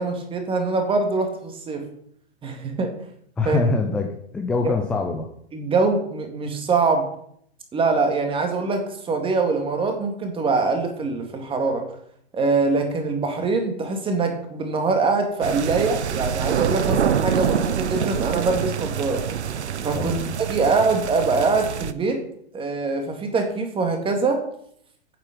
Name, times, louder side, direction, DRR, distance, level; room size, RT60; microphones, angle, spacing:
voice 1, 0.0-1.9 2.4-2.9 3.5-3.6 4.6-4.7 5.5-7.1 7.7-11.9 12.3-19.3 19.8-22.2 22.5-24.4, right 4 dB, 15° right, 4 dB, 2.0 m, -23 dB
voice 2, 3.4-5.3 19.9-20.3, left 3 dB, 5° left, 3 dB, 0.3 m, -24 dB
sound 1, 15.4-21.9, right 8 dB, 85° right, 0.8 m, -26 dB
9.1 x 7.5 x 5.1 m, 0.67 s
hypercardioid pair, 125°, 33 cm